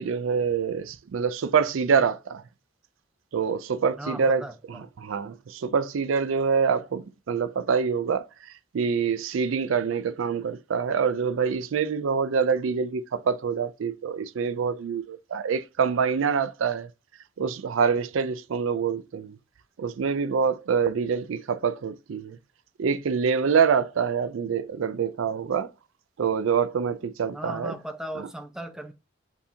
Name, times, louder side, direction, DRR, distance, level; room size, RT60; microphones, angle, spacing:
voice 1, 0.0-2.4 3.3-4.4 4.7-16.9 17.4-19.4 19.8-22.4 22.8-25.7 26.2-27.7 28.2-28.3, right 6 dB, 80° right, 0.4 m, -26 dB
voice 2, 4.0-4.8 27.3-28.9, right 1 dB, 5° right, 0.4 m, -37 dB
7.1 x 2.7 x 2.7 m
head